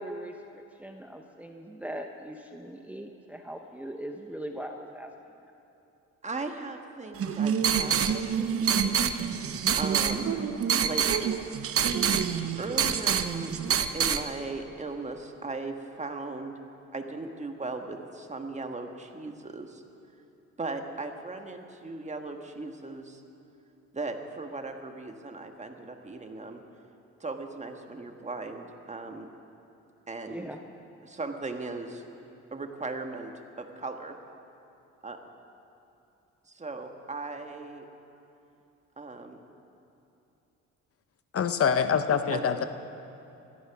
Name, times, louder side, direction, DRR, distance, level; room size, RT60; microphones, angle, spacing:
voice 1, 0.0-5.1 5.4-5.5 30.3-30.6, right 1 dB, 5° right, 3 dB, 0.9 m, -40 dB
voice 2, 6.2-8.9 9.7-10.3 10.8-11.0 12.6-16.5 16.9-19.8 20.6-23.2 23.9-26.6 27.2-29.3 30.1-30.5 31.0-32.0 32.5-33.3 33.6-34.2 35.0-35.2 36.5-37.8 39.0-39.4 42.1-42.6, right 3 dB, 25° right, 5 dB, 1.4 m, -37 dB
sound 1, 7.2-14.2, right 7 dB, 50° right, 0.8 m, -26 dB
voice 3, 41.3-42.6, left 7 dB, 50° left, 10 dB, 0.8 m, -25 dB
16.5 x 13.5 x 5.9 m, 2.9 s
cardioid pair, 90°, 30 cm